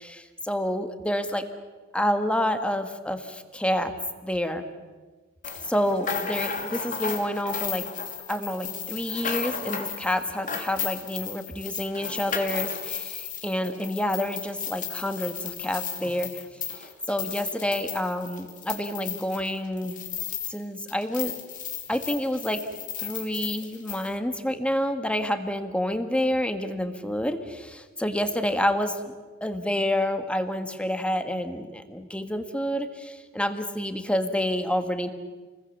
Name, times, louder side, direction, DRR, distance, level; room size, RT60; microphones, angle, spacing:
voice 1, 0.0-1.4 1.9-3.9 4.2-4.7 5.7-7.8 8.3-16.4 16.7-20.0 20.5-21.3 21.9-22.6 23.0-29.1 29.4-35.1, left 1 dB, 5° left, 8 dB, 1.6 m, -28 dB
sound 1, 5.4-20.6 20.9-24.1, left 7 dB, 40° left, 2.7 m, -34 dB
28.5 x 21.0 x 7.2 m, 1.3 s
head